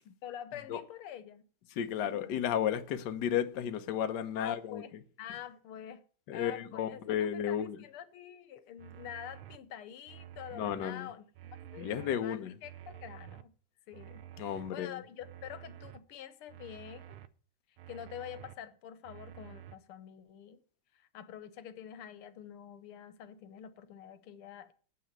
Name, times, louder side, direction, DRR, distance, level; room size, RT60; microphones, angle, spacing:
voice 1, 0.2-1.4 2.0-2.4 4.4-4.9 5.2-6.0 6.3-7.0 7.3-13.5 13.9-17.2 17.9-20.6 21.0-24.7, left 10 dB, 90° left, 1.9 m, -47 dB
voice 2, 1.7-4.8 6.3-7.8 10.5-11.1 11.8-12.5 14.4-15.0, left 9 dB, 60° left, 1.4 m, -33 dB
sound 1, 8.8-9.6 10.1-10.8 11.3-12.2 12.6-13.4 13.9-14.7 15.2-16.0 16.5-17.3 17.8-18.5 19.0-19.8, right 11 dB, 80° right, 1.6 m, -50 dB
9.2 x 6.9 x 8.7 m
omnidirectional pair, 2.3 m